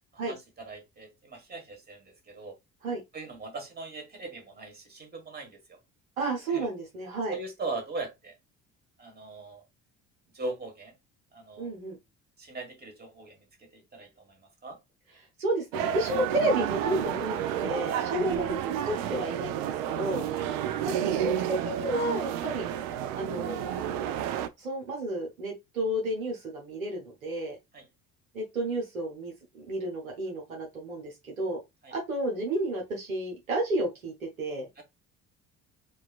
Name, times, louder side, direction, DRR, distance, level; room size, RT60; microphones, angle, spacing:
voice 1, 0.1-2.6 3.1-5.8 6.5-6.6 7.3-8.3 9.0-9.6 10.3-10.9 11.3-11.7 12.4-14.4 14.6-14.8 18.2-18.4 20.4-20.5 27.7-27.8 31.8-31.9 34.8-34.9, right 3 dB, 25° right, 1.6 m, -40 dB
voice 2, 6.2-7.4 11.6-12.0 15.4-20.2 20.8-22.6 23.2-23.6 24.6-27.6 28.3-31.6 31.9-34.7, right 1 dB, 85° right, 1.0 m, -31 dB
sound 1, 15.7-24.5, right 10 dB, 55° right, 0.5 m, -31 dB
4.5 x 2.4 x 2.3 m
figure-of-eight pair, 50°, 40 cm